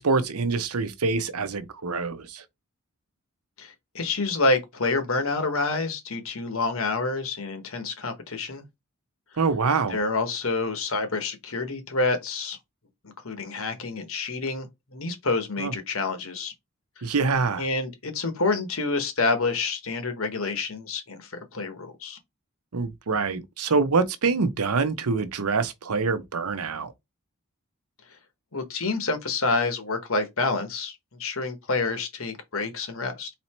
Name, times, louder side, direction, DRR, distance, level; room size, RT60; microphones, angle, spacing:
voice 1, 0.0-2.4 9.4-10.0 15.6-15.7 17.0-17.6 22.7-26.9, right 4 dB, 80° right, 0.7 m, -25 dB
voice 2, 3.6-8.6 9.9-12.6 13.0-16.5 17.0-17.1 17.6-22.2 28.5-33.3, left 3 dB, 65° left, 1.3 m, -28 dB
4.1 x 2.8 x 4.4 m
head